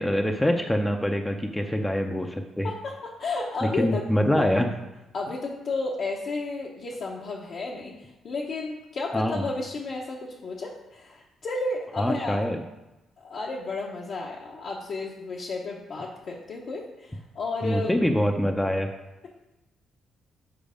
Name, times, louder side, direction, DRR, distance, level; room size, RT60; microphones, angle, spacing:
voice 1, 0.0-2.7 3.8-4.7 9.1-9.4 12.0-12.6 17.6-18.9, equal, 5° left, 3 dB, 0.6 m, -25 dB
voice 2, 2.6-4.0 4.4-4.6 5.1-12.4 13.2-17.9, left 3 dB, 60° left, -3 dB, 0.9 m, -32 dB
7.1 x 4.6 x 5.1 m, 1.0 s
cardioid pair, 90°, 0 cm